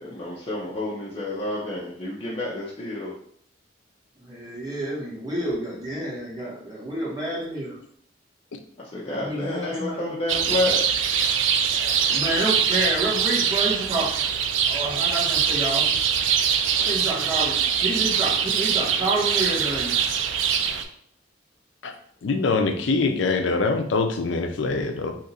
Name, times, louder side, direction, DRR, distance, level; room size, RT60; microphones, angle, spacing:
voice 1, 0.0-3.1 8.8-10.9 22.6-22.9, left 2 dB, 30° left, -6 dB, 0.6 m, -30 dB
voice 2, 4.3-7.7 9.2-10.1 12.1-14.1 14.7-15.9 16.9-19.9, right 1 dB, 20° right, -7 dB, 1.3 m, -29 dB
sound 1, 10.3-20.8, right 7 dB, 90° right, 0.4 m, -23 dB
voice 3, 22.2-25.1, left 3 dB, 75° left, 6 dB, 0.5 m, -24 dB
2.8 x 2.5 x 4.1 m, 0.64 s
head